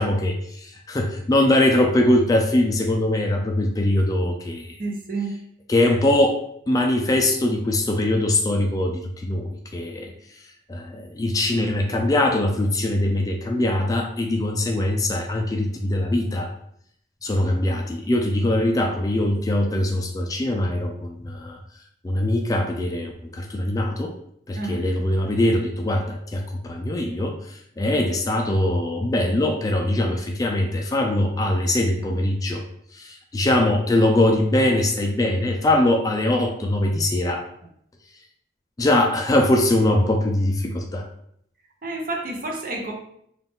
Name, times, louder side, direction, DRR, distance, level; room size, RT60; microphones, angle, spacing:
voice 1, 0.0-4.8 5.7-6.4 6.7-10.1 10.7-16.5 17.2-21.6 22.0-24.2 24.5-32.6 32.9-37.5 38.8-41.1, left 1 dB, 20° left, 2 dB, 0.3 m, -22 dB
voice 2, 4.8-5.4 24.5-24.9 41.8-42.9, right 2 dB, 50° right, 1 dB, 0.7 m, -29 dB
4.0 x 2.4 x 3.5 m, 0.71 s
head